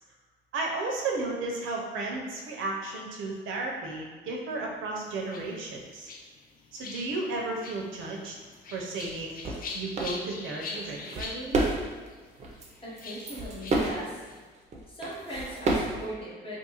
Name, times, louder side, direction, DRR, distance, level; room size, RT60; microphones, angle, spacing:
voice 1, 0.5-6.1 6.7-8.3 8.7-9.4 9.7-11.6, right 2 dB, 80° right, -1 dB, 0.6 m, -33 dB
sound 1, 5.0-14.5, left 3 dB, 45° left, 0.4 m, -43 dB
sound 2, 9.1-9.2 9.4-9.7 10.0-10.1 10.7-12.1 12.4-12.7 13.0-14.0 14.7-16.1, right 2 dB, 35° right, 0.5 m, -30 dB
voice 2, 12.8-14.2 14.9-16.6, right 1 dB, 25° left, -6 dB, 1.0 m, -39 dB
2.5 x 2.4 x 2.9 m, 1.4 s
cardioid pair, 90°, 20 cm